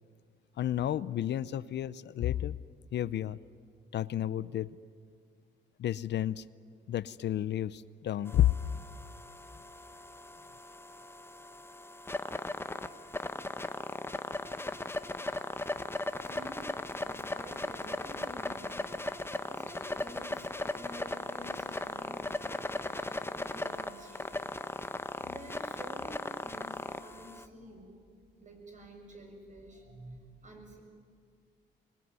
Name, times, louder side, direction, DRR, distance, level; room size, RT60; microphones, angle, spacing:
voice 1, 0.6-2.6 2.9-3.4 3.9-4.7 5.8-6.4 6.9-8.5, left 12 dB, 60° left, 17 dB, 0.6 m, -31 dB
sound 1, 8.3-27.5, left 2 dB, 10° left, 1.1 m, -38 dB
voice 2, 16.2-24.4 24.7-24.9 25.2-28.0 28.4-30.8, right 1 dB, 40° right, 3 dB, 7.1 m, -50 dB
25.5 x 21.5 x 9.6 m, 2.1 s
cardioid pair, 90°, 20 cm